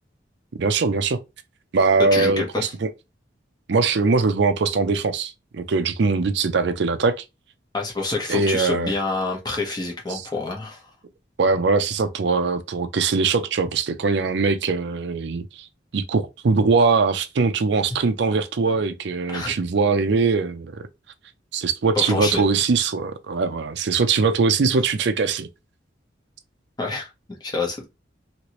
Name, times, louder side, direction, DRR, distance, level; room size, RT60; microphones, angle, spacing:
voice 1, 0.5-1.2 1.7-2.9 3.7-7.2 8.3-8.9 10.1-10.3 11.4-15.7 15.9-20.9 21.5-25.5, right 4 dB, 65° right, 0.5 m, -21 dB
voice 2, 2.0-2.7 7.7-10.8 19.3-19.5 21.9-22.5 26.8-27.1 27.4-27.8, left 3 dB, 20° left, 0.9 m, -27 dB
3.0 x 2.9 x 2.9 m
head